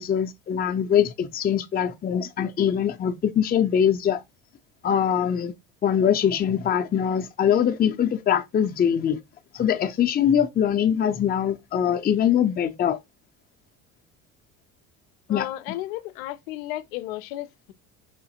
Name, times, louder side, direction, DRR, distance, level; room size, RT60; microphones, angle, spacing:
voice 1, 0.0-4.2 4.8-5.5 5.8-9.2 9.5-13.0 15.3-15.5, left 9 dB, 25° left, 0.5 m, -22 dB
voice 2, 15.3-17.7, left 15 dB, 85° left, 0.5 m, -34 dB
4.9 x 2.5 x 2.8 m
supercardioid pair, 85°, 39 cm